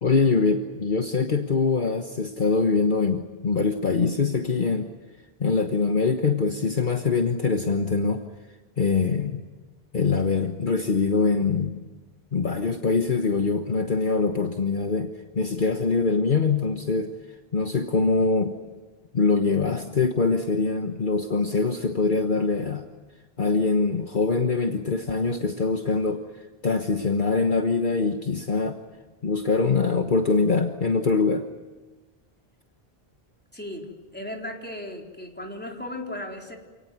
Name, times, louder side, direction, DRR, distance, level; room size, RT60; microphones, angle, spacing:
voice 1, 0.0-4.9 5.4-8.2 8.8-9.4 9.9-11.8 12.3-17.1 17.5-18.5 19.1-22.9 23.4-26.2 26.6-28.8 29.2-31.4, left 4 dB, 50° left, 5 dB, 1.4 m, -23 dB
voice 2, 33.5-36.6, left 1 dB, 10° left, 1 dB, 4.0 m, -36 dB
28.0 x 19.0 x 9.5 m, 1.3 s
omnidirectional pair, 1.1 m